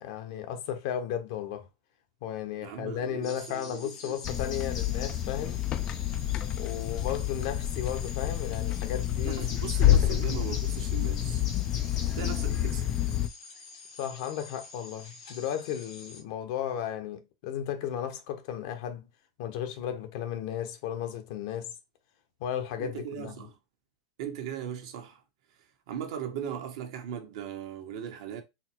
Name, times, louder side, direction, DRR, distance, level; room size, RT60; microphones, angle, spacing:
voice 1, 0.0-1.7 2.2-5.6 6.6-10.3 14.0-19.1 19.4-21.7 22.4-23.5, left 9 dB, 60° left, 1.0 m, -35 dB
voice 2, 2.6-4.2 9.2-11.4 12.1-12.8 22.8-23.5 24.2-25.2 25.9-28.4, right 9 dB, 65° right, 1.0 m, -38 dB
sound 1, 3.2-16.2, left 4 dB, 85° left, 1.6 m, -46 dB
sound 2, 4.2-13.3, left 12 dB, 30° left, 0.4 m, -28 dB
4.1 x 2.0 x 4.3 m
supercardioid pair, 135°, 3 cm